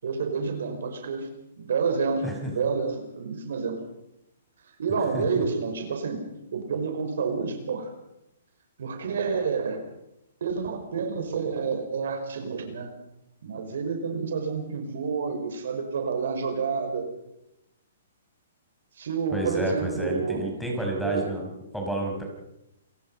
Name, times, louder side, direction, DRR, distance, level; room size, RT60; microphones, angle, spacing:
voice 1, 0.0-1.3 1.6-3.8 4.8-6.3 6.5-7.9 8.8-9.8 10.4-12.9 13.4-17.1 19.0-20.5 21.0-21.4, right 5 dB, 70° right, 5 dB, 5.4 m, -29 dB
voice 2, 2.2-2.5 5.1-5.4 19.3-21.5 21.7-22.2, right 1 dB, ahead, 0 dB, 5.6 m, -30 dB
28.5 x 18.0 x 5.6 m, 0.85 s
hypercardioid pair, 155°, 0 cm